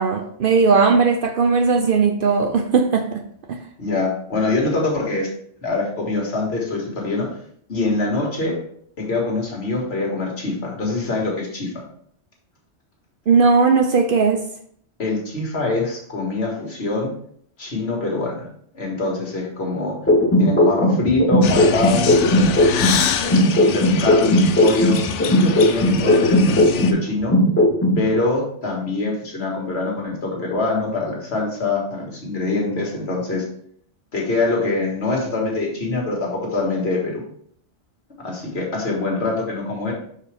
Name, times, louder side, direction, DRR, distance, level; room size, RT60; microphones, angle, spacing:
voice 1, 0.0-3.2 3.5-3.6 13.3-14.4, right 5 dB, 60° right, 6 dB, 0.6 m, -17 dB
voice 2, 3.8-5.3 5.6-7.3 7.7-8.6 9.0-11.8 15.0-17.1 17.6-18.4 18.7-20.0 20.4-22.2 23.2-27.3 28.0-33.4 34.1-37.2 38.2-39.9, left 3 dB, 65° left, -1 dB, 1.8 m, -24 dB
sound 1, 20.1-23.0 23.3-27.0 27.3-28.0, left 1 dB, 15° left, 0.5 m, -16 dB
sound 2, 21.4-26.9, left 8 dB, 80° left, 0.9 m, -25 dB
5.9 x 4.8 x 3.4 m, 0.64 s
omnidirectional pair, 1.2 m